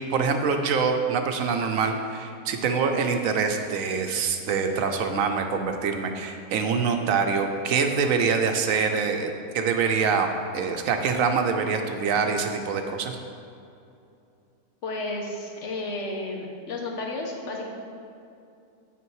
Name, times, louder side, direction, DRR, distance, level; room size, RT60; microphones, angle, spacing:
voice 1, 0.1-9.3 9.5-10.3 10.5-13.2, right 5 dB, 70° right, 5 dB, 1.0 m, -25 dB
voice 2, 14.8-17.7, left 2 dB, 55° left, 1 dB, 1.3 m, -32 dB
8.3 x 5.9 x 4.7 m, 2.6 s
omnidirectional pair, 1.5 m